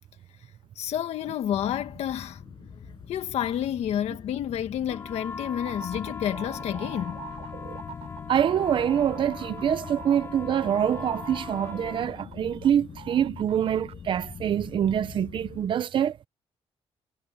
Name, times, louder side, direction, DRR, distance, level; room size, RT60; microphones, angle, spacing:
voice 1, 0.8-2.4 3.1-7.2, left 10 dB, 75° left, 1.9 m, -30 dB
sound 1, 1.5-15.7, left 7 dB, 40° left, 7.1 m, -43 dB
sound 2, 4.9-12.1, left 4 dB, 20° left, 6.6 m, -40 dB
sound 3, 5.7-12.7 13.0-13.9, right 10 dB, 65° right, 7.7 m, -44 dB
voice 2, 8.3-16.1, right 9 dB, 50° right, 0.7 m, -25 dB
cardioid pair, 175°, 11 cm